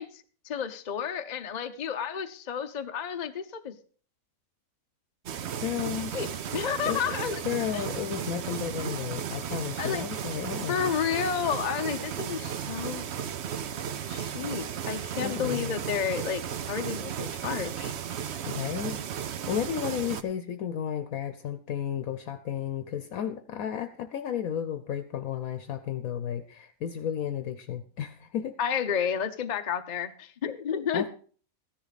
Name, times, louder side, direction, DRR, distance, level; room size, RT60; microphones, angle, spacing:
voice 1, 0.0-3.7 6.1-7.4 7.7-7.8 9.8-10.1 10.7-13.1 14.1-17.9 28.6-31.0, left 8 dB, 40° left, 8 dB, 0.7 m, -31 dB
sound 1, 5.3-20.2, right 8 dB, 55° right, 0.9 m, -35 dB
voice 2, 5.6-6.1 6.9-7.0 7.4-10.9 15.2-15.7 18.4-19.0 19.5-28.5 30.9-31.1, left 9 dB, 75° left, 10 dB, 1.2 m, -33 dB
14.0 x 10.5 x 4.1 m, 0.43 s
omnidirectional pair, 1.5 m